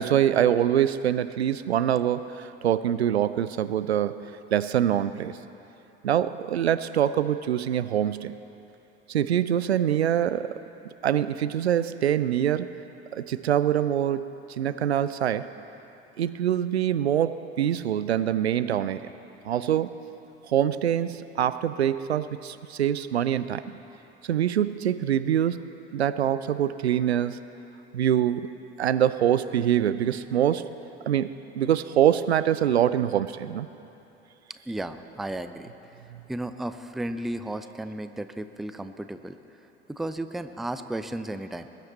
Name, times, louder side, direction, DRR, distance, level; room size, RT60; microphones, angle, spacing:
voice 1, 0.0-4.2 4.5-5.4 6.0-8.3 9.1-10.6 11.0-12.7 13.1-14.3 14.6-15.5 16.2-19.1 19.4-19.9 20.4-23.8 24.2-27.4 27.9-28.5 28.8-30.7 31.1-33.7 36.1-36.2, right 10 dB, 80° right, 14 dB, 0.5 m, -24 dB
voice 2, 34.7-35.7 36.3-39.4 39.9-41.7, right 1 dB, ahead, 10 dB, 0.3 m, -34 dB
20.0 x 9.3 x 4.1 m, 3.0 s
figure-of-eight pair, 70°, 32 cm